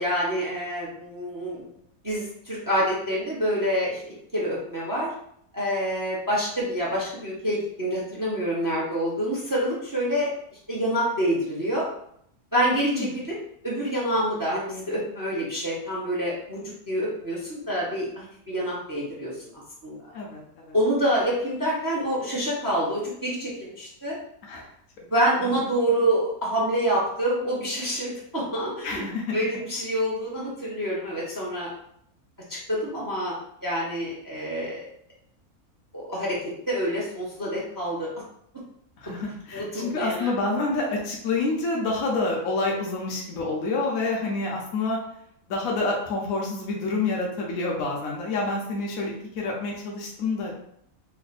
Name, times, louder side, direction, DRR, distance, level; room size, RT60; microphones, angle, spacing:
voice 1, 0.0-1.7 2.0-4.0 4.3-5.1 5.5-10.3 10.7-11.9 12.5-13.4 13.6-19.3 19.8-20.0 20.7-24.2 25.1-29.0 29.3-31.7 32.7-34.8 35.9-36.4 36.7-38.1 39.5-40.3, equal, 20° right, -5 dB, 0.7 m, -27 dB
voice 2, 12.8-13.1 20.1-20.7 24.4-24.7 25.4-25.5 28.8-29.2 39.0-45.0 45.5-50.5, left 3 dB, 70° left, -2 dB, 1.1 m, -28 dB
3.2 x 2.1 x 4.0 m, 0.70 s
omnidirectional pair, 1.5 m